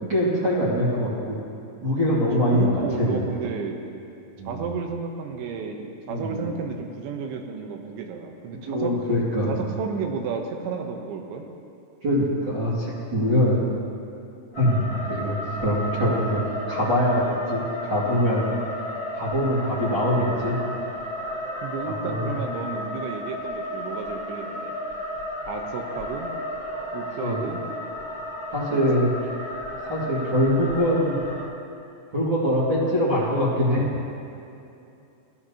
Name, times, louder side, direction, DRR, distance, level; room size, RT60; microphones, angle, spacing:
voice 1, 0.0-1.4 1.8-2.7 3.0-3.2 4.4-4.6 6.1-6.4 8.7-9.5 12.0-13.6 14.6-18.4 19.1-20.6 21.9-22.4 27.2-27.4 28.5-29.1 29.9-31.2 32.1-33.9, equal, 35° right, -9 dB, 1.9 m, -23 dB
voice 2, 2.5-3.8 4.5-9.0 9.5-11.5 21.6-24.7 25.5-26.3 26.9-27.6 28.7-29.0, right 5 dB, 80° right, 3 dB, 3.3 m, -32 dB
sound 1, 14.5-31.5, left 1 dB, 60° left, 0.9 m, -33 dB
17.5 x 13.5 x 2.9 m, 2.7 s
omnidirectional pair, 5.4 m